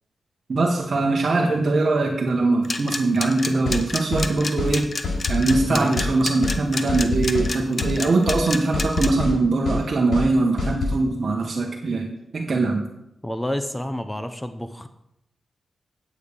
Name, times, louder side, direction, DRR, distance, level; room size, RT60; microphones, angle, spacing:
voice 1, 0.5-4.9 5.3-12.9, right 3 dB, 50° right, 0 dB, 1.3 m, -22 dB
sound 1, 2.6-9.1, left 3 dB, 40° left, 1.0 m, -28 dB
sound 2, 3.6-3.8 4.1-4.3 4.6-4.7 5.0-5.7 6.0-6.1 6.4-6.6 6.9-7.5 7.8-8.0 8.3-8.4 8.7-9.3 9.6-9.8 10.1-10.3 10.6-11.0, left 3 dB, 70° left, 4.8 m, -25 dB
voice 2, 13.2-14.9, left 1 dB, 10° left, 9 dB, 0.7 m, -29 dB
9.0 x 8.5 x 5.1 m, 0.83 s
cardioid pair, 85°, 0 cm